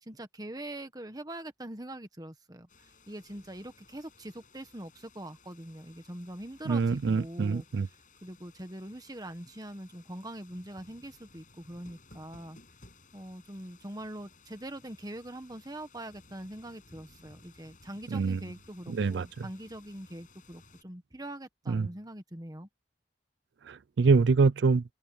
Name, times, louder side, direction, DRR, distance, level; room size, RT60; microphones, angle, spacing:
voice 1, 0.0-7.6 8.2-12.6 13.1-22.7, right 1 dB, 20° right, 1.5 m, -43 dB
sound 1, 2.7-20.8, left 3 dB, 45° left, 7.6 m, -59 dB
voice 2, 6.7-7.9 18.1-18.4 18.9-19.5 21.7-21.9 23.7-24.8, right 4 dB, 70° right, 0.4 m, -25 dB
head